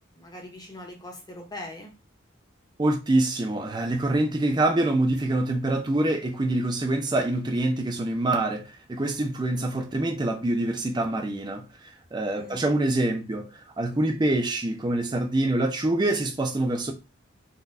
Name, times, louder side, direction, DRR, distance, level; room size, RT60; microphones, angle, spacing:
voice 1, 0.0-1.9 12.2-12.6, left 1 dB, 20° left, 0.8 m, -41 dB
voice 2, 2.8-13.5 13.8-16.9, right 2 dB, 20° right, 0.4 m, -25 dB
3.9 x 2.2 x 2.5 m
head